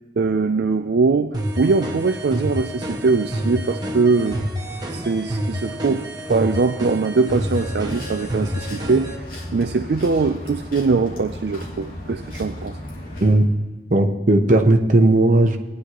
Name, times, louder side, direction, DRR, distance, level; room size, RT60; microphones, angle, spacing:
voice 1, 0.2-4.4 4.9-9.3 9.5-12.8, right 4 dB, 65° right, 7 dB, 0.4 m, -21 dB
sound 1, 1.3-9.2, equal, 25° right, 1.6 m, -28 dB
sound 2, 7.3-13.3, left 1 dB, 55° left, 2.8 m, -35 dB
voice 2, 13.9-15.6, right 2 dB, 45° right, 4 dB, 1.0 m, -16 dB
19.0 x 9.8 x 3.0 m, 1.3 s
head